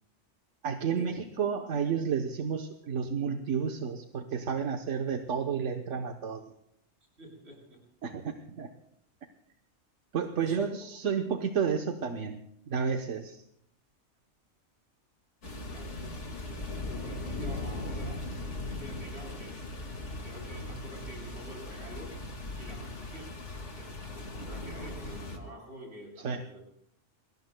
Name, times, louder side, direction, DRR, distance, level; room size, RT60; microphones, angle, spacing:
voice 1, 0.6-6.5 8.0-8.7 10.1-13.4 26.2-26.4, right 6 dB, 85° right, 5 dB, 1.3 m, -31 dB
voice 2, 7.2-7.8 10.4-10.6 15.7-15.9 16.9-18.2 18.7-19.6 20.1-26.6, equal, 65° right, -1 dB, 8.1 m, -48 dB
sound 1, 15.4-25.4, left 2 dB, 80° left, 2.3 m, -39 dB
28.0 x 21.5 x 2.2 m, 0.71 s
omnidirectional pair, 1.2 m